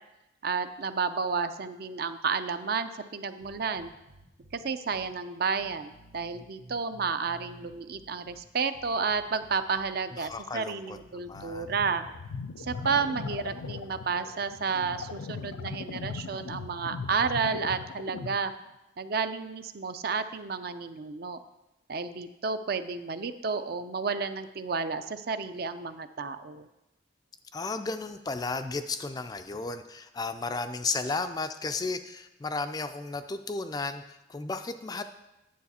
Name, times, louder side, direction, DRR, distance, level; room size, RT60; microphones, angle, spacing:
voice 1, 0.4-3.9 4.5-12.0 12.6-18.5 19.0-21.4 21.9-26.7, right 5 dB, 50° right, 10 dB, 0.5 m, -31 dB
sound 1, 3.4-4.6 4.9-5.1 5.6-8.4 8.7-9.9 10.2-10.4 10.9-13.8, right 2 dB, 80° right, 1.3 m, -53 dB
voice 2, 10.1-11.7 27.5-35.0, left 3 dB, 20° left, 9 dB, 0.3 m, -34 dB
sound 2, 11.3-18.5, left 5 dB, 90° left, 0.5 m, -39 dB
9.4 x 7.2 x 4.2 m, 0.96 s
head